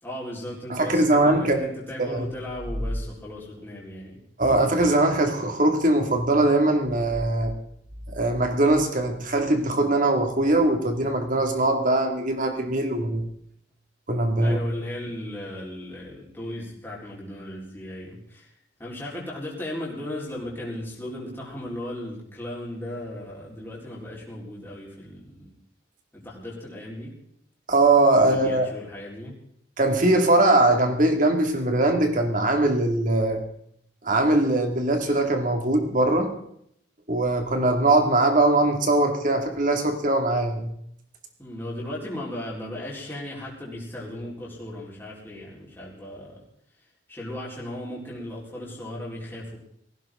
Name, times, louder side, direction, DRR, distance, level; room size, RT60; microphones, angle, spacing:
voice 1, 0.0-4.2 14.4-18.5 18.8-25.5 26.1-27.1 28.1-29.3 41.4-46.4 47.1-49.6, left 1 dB, 10° left, -5 dB, 4.4 m, -36 dB
voice 2, 0.7-1.6 2.0-2.3 4.4-7.5 8.1-13.3 14.1-14.6 27.7-28.7 29.8-33.4 34.0-36.3 37.1-40.7, right 2 dB, 45° right, 4 dB, 2.4 m, -21 dB
18.5 x 16.0 x 3.8 m, 0.70 s
head